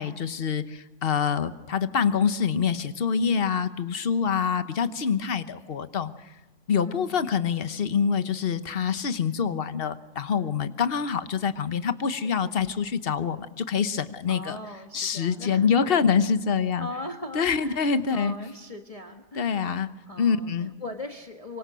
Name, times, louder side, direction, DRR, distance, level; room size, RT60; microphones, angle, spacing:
voice 1, 0.0-6.1 6.7-14.6 14.9-16.9 17.3-18.3 19.4-19.9 20.2-20.7, left 6 dB, 45° left, 12 dB, 1.2 m, -25 dB
voice 2, 6.8-7.2 12.2-12.5 14.3-15.9 16.8-21.6, left 1 dB, 25° left, 4 dB, 1.4 m, -40 dB
25.0 x 24.0 x 6.3 m, 1.2 s
omnidirectional pair, 1.5 m